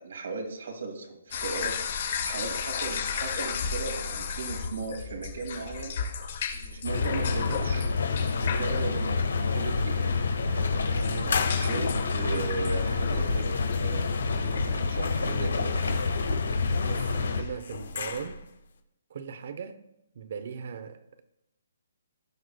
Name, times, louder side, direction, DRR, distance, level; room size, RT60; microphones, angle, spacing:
voice 1, 0.0-1.7 2.0-5.9 6.5-7.9 8.3-10.1 11.5-15.7, right 3 dB, 70° right, 2.2 m, -37 dB
sound 1, 1.3-17.6, left 6 dB, 50° left, 2.7 m, -36 dB
sound 2, 6.8-17.4, left 4 dB, 90° left, 1.3 m, -28 dB
voice 2, 10.4-12.0 16.8-18.4 19.1-19.8 20.1-21.2, right 6 dB, 55° right, 0.8 m, -40 dB
sound 3, 11.1-18.6, left 6 dB, 65° left, 1.0 m, -38 dB
17.5 x 5.9 x 2.3 m
hypercardioid pair, 165°, 0 cm